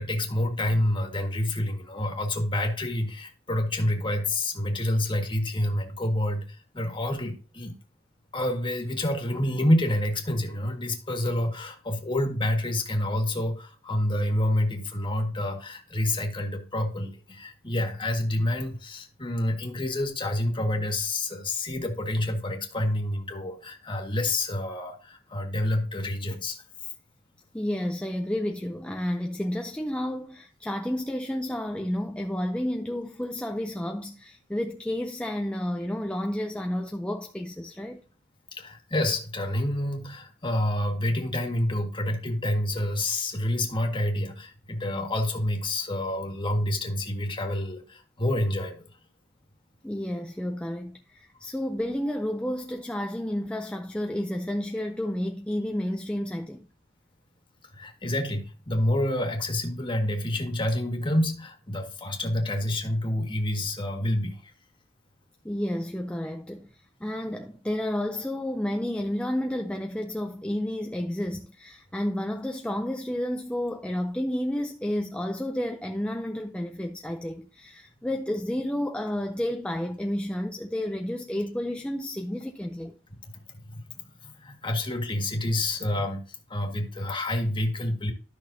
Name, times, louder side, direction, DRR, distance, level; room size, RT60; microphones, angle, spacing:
voice 1, 0.0-7.8 8.3-26.6 38.5-48.8 57.7-64.5 83.2-88.1, left 1 dB, 25° left, 1.8 m, -28 dB
voice 2, 27.5-38.0 49.8-56.7 65.4-66.7 67.0-82.9, left 1 dB, 5° left, 0.5 m, -31 dB
13.0 x 6.1 x 2.7 m
head